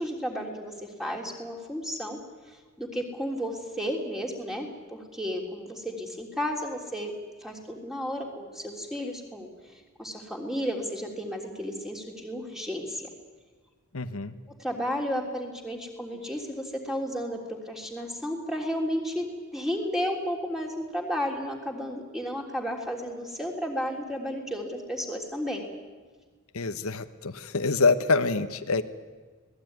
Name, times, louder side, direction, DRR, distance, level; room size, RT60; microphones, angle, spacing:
voice 1, 0.0-2.2 2.8-7.1 7.4-9.5 10.0-13.0 14.6-17.4 17.6-19.3 19.5-25.6, equal, ahead, 1 dB, 3.3 m, -33 dB
voice 2, 13.9-14.4 26.5-28.8, left 3 dB, 75° left, 8 dB, 1.2 m, -26 dB
26.0 x 19.0 x 9.5 m, 1.4 s
head